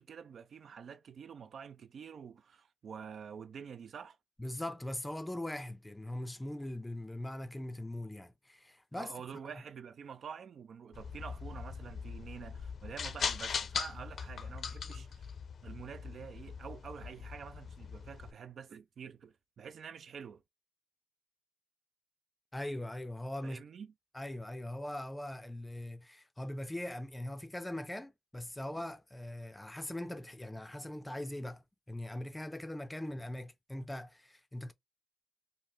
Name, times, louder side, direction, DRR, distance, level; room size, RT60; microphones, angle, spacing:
voice 1, 0.0-4.2 8.9-15.3 15.6-20.4 23.4-23.9, right 7 dB, 55° right, 0.4 m, -47 dB
voice 2, 4.4-9.1 14.9-15.0 22.5-23.6 24.1-34.7, left 1 dB, 10° left, 0.5 m, -41 dB
sound 1, 10.9-18.3, left 6 dB, 55° left, 0.6 m, -40 dB
5.5 x 2.1 x 3.2 m
cardioid pair, 120°, 0 cm